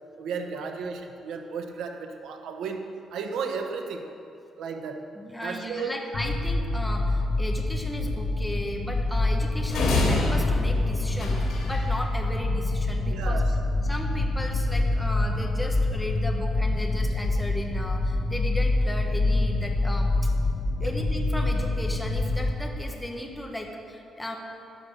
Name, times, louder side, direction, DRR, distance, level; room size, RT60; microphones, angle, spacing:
voice 1, 0.2-4.1 4.6-5.1 5.4-6.0 13.1-13.5 20.8-21.0, right 5 dB, 90° right, 4 dB, 1.0 m, -34 dB
voice 2, 5.2-13.4 13.8-20.3 20.8-24.4, left 1 dB, 5° left, 1 dB, 1.1 m, -35 dB
sound 1, 6.1-22.5, left 2 dB, 45° left, 1.2 m, -26 dB
sound 2, 9.7-11.9, left 3 dB, 85° left, 2.9 m, -27 dB
10.5 x 10.5 x 6.6 m, 2.6 s
cardioid pair, 145°, 0 cm